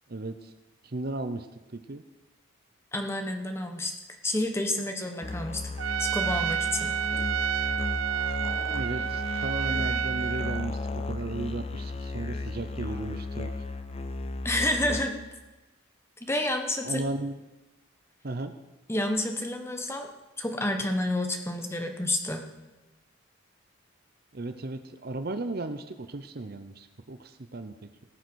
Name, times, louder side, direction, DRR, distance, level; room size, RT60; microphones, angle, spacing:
voice 1, 0.1-0.5 0.8-1.5 1.7-2.0 8.7-13.5 16.8-17.3 18.2-18.5 24.3-27.7, right 2 dB, 50° right, 9 dB, 0.7 m, -35 dB
voice 2, 2.9-3.9 4.2-5.6 6.0-6.9 14.4-15.2 16.2-17.0 18.9-20.1 20.4-22.5, left 1 dB, 15° left, 4 dB, 1.3 m, -29 dB
Musical instrument, 5.2-15.4, left 2 dB, 30° left, 0.7 m, -34 dB
Trumpet, 5.8-10.7, right 9 dB, 90° right, 0.4 m, -30 dB
18.5 x 6.8 x 6.3 m, 1.1 s
head